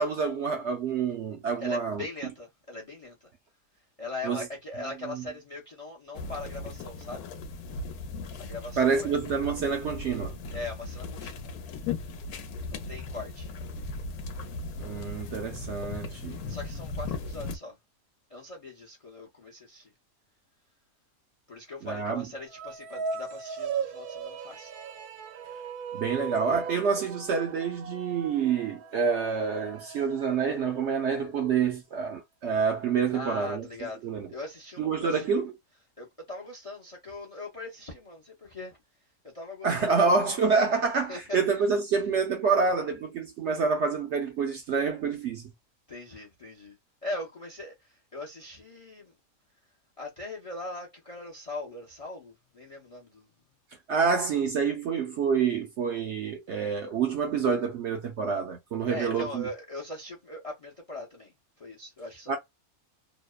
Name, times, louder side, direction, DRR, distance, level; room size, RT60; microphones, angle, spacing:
voice 1, 0.0-2.0 4.2-4.4 5.1-5.2 8.8-10.4 14.8-16.4 21.8-22.3 25.9-33.7 34.0-34.3 34.8-35.5 39.6-45.5 53.9-59.4 62.3-62.4, right 5 dB, 65° right, 0.7 m, -27 dB
voice 2, 1.6-3.3 4.0-7.3 8.4-9.2 10.5-11.5 12.7-13.5 16.5-17.8 18.3-19.9 21.5-24.7 33.1-35.3 36.0-38.8 39.2-40.2 41.1-41.4 45.9-46.8 47.0-49.1 50.0-53.3 58.9-62.4, left 2 dB, 40° left, 0.5 m, -40 dB
sound 1, 6.1-17.6, left 3 dB, 90° left, 1.1 m, -37 dB
sound 2, 22.5-31.0, right 6 dB, 85° right, 1.1 m, -38 dB
2.8 x 2.0 x 2.2 m
omnidirectional pair, 1.5 m